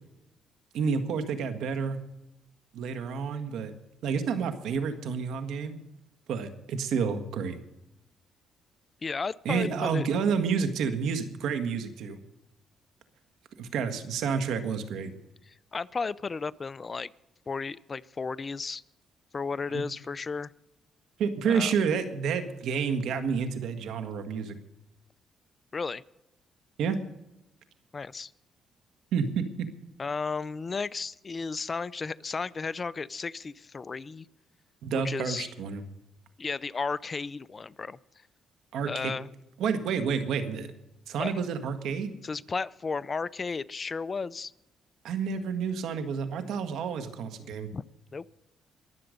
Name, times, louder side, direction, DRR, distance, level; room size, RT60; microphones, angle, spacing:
voice 1, 0.7-2.0 2.7-3.7 4.0-5.8 6.3-7.6 9.4-12.2 13.6-15.1 19.7-19.8 21.2-24.6 26.8-27.0 29.1-29.7 34.8-35.8 38.7-39.1 39.6-40.7 41.1-42.1 45.0-47.7, right 6 dB, 80° right, 9 dB, 1.6 m, -29 dB
voice 2, 9.0-10.1 15.5-17.1 17.5-18.8 19.3-20.5 21.5-21.7 25.7-26.0 27.9-28.3 30.0-34.3 34.9-35.5 36.4-38.0 38.8-39.3 41.2-41.3 42.2-44.5 47.7-47.8 48.1-48.2, left 4 dB, 35° left, 18 dB, 0.5 m, -34 dB
22.5 x 8.0 x 5.2 m, 0.90 s
cardioid pair, 90°, 0 cm